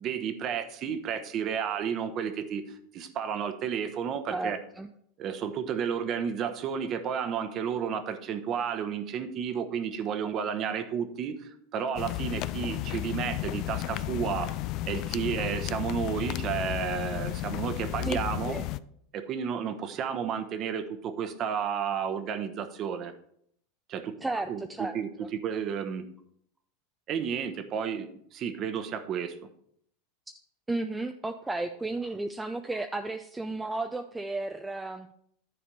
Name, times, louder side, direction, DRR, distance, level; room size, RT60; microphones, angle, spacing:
voice 1, 0.0-2.6 2.9-4.6 5.2-14.6 14.8-18.6 19.1-23.1 23.9-24.1 24.5-26.0 27.1-29.3, right 7 dB, 40° right, 10 dB, 1.0 m, -32 dB
voice 2, 4.3-4.9 18.0-18.2 18.5-18.7 24.2-25.3 30.7-35.1, right 2 dB, 10° right, 7 dB, 0.5 m, -33 dB
sound 1, 12.0-18.8, left 16 dB, 50° left, 0.3 m, -33 dB
10.0 x 4.3 x 5.3 m, 0.68 s
supercardioid pair, 115°, 0 cm